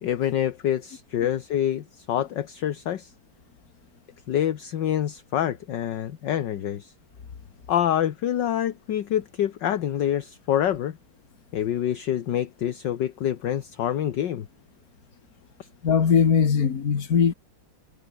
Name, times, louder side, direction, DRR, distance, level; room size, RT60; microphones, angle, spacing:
voice 1, 0.0-3.1 4.3-6.9 7.7-11.0 11.5-14.5, left 10 dB, 60° left, 1.7 m, -26 dB
voice 2, 15.8-17.3, left 6 dB, 45° left, 2.1 m, -20 dB
omnidirectional pair, 2.3 m